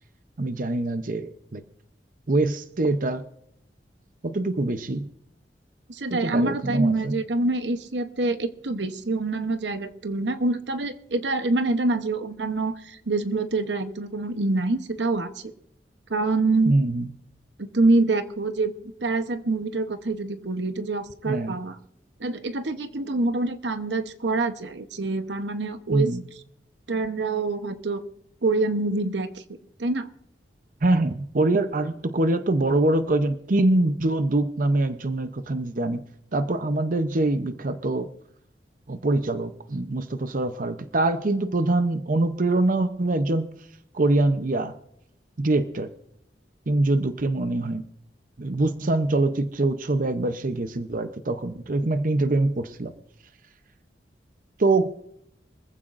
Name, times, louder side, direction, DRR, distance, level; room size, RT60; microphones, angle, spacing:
voice 1, 0.4-1.6 2.3-3.3 4.2-5.1 6.1-7.1 16.7-17.1 21.2-21.6 25.9-26.2 30.8-36.0 36.3-38.1 38.9-43.5 43.9-44.7 45.4-45.9 46.7-47.8 48.4-52.9 54.6-54.9, right 2 dB, 50° right, 9 dB, 0.7 m, -24 dB
voice 2, 5.9-15.3 16.1-16.7 17.6-21.8 22.2-26.1 26.9-28.0 28.4-29.3 29.8-30.1, right 2 dB, 85° right, 9 dB, 0.9 m, -26 dB
24.5 x 15.0 x 2.6 m, 0.73 s
head